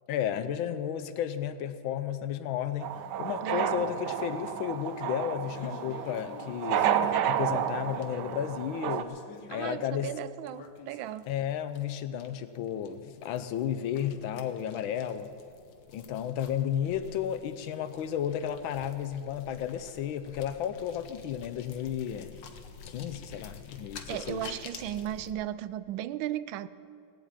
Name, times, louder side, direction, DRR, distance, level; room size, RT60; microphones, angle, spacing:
voice 1, 0.1-6.9 7.2-9.2 9.5-10.2 11.3-15.3 15.9-22.5 22.9-24.5, left 9 dB, 90° left, 11 dB, 1.6 m, -33 dB
sound 1, 2.8-9.0, right 9 dB, 70° right, 1.1 m, -31 dB
voice 2, 3.4-3.9 9.5-11.3 24.1-26.7, right 12 dB, 90° right, 16 dB, 1.4 m, -36 dB
sound 2, 5.5-25.3, left 6 dB, 75° left, 1.7 m, -50 dB
17.5 x 8.4 x 8.8 m, 2.5 s
omnidirectional pair, 2.1 m